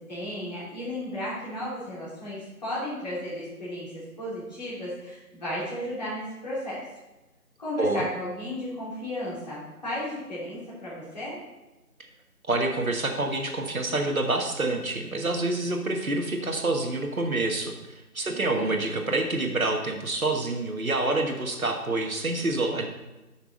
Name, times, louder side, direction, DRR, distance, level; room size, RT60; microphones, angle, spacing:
voice 1, 0.1-6.8 7.6-11.4 18.2-19.0, left 1 dB, 25° left, -9 dB, 2.9 m, -34 dB
voice 2, 12.5-22.9, right 2 dB, 60° right, 3 dB, 1.4 m, -27 dB
7.4 x 6.0 x 5.1 m, 1.1 s
figure-of-eight pair, 170°, 47 cm